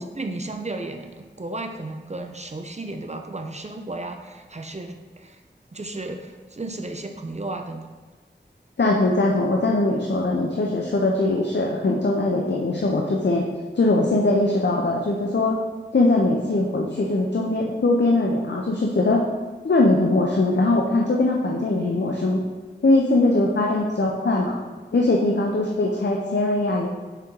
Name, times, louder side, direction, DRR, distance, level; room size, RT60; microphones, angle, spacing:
voice 1, 0.2-5.4 5.7-7.9, right 2 dB, 35° right, 5 dB, 0.5 m, -34 dB
voice 2, 8.8-13.4 13.7-15.6 15.9-19.2 19.6-22.4 22.8-24.6 24.9-26.9, left 2 dB, 70° left, -1 dB, 0.7 m, -21 dB
6.6 x 3.7 x 4.6 m, 1.4 s
wide cardioid pair, 55°, 19 cm